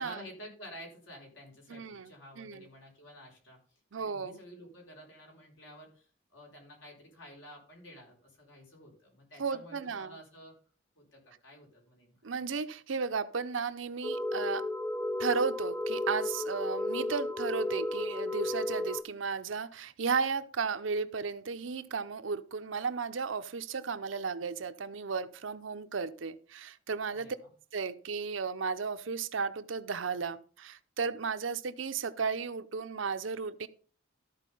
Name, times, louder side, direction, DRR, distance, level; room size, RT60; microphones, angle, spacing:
voice 1, 0.0-3.6 3.9-10.5 10.9-12.2 27.1-27.5, equal, 70° left, -1 dB, 4.2 m, -51 dB
voice 2, 1.7-2.7 3.9-4.4 9.4-10.2 12.2-14.6 15.2-27.3 27.7-33.7, right 5 dB, 75° right, 11 dB, 0.7 m, -34 dB
sound 1, 14.0-19.0, left 2 dB, 10° left, 0.4 m, -33 dB
13.5 x 4.6 x 5.4 m, 0.42 s
head